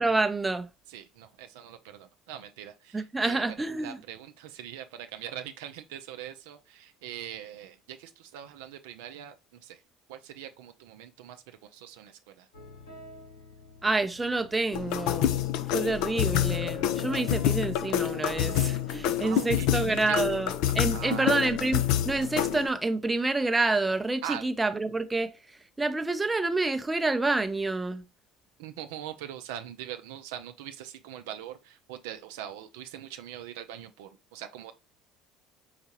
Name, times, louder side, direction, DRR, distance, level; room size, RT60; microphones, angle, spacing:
voice 1, 0.0-0.7 2.9-4.0 13.8-15.4 15.7-25.3 25.8-28.0, right 3 dB, 15° right, 0.5 m, -28 dB
voice 2, 0.9-9.3 9.6-9.8 10.1-12.5 19.2-20.2 20.9-21.5 24.2-24.4 28.6-34.7, right 10 dB, 75° right, 0.5 m, -42 dB
sound 1, 12.5-23.4, left 3 dB, 80° left, 1.5 m, -46 dB
sound 2, 14.7-22.7, left 11 dB, 65° left, 0.4 m, -28 dB
4.5 x 4.0 x 2.9 m
hypercardioid pair, 65°, 0 cm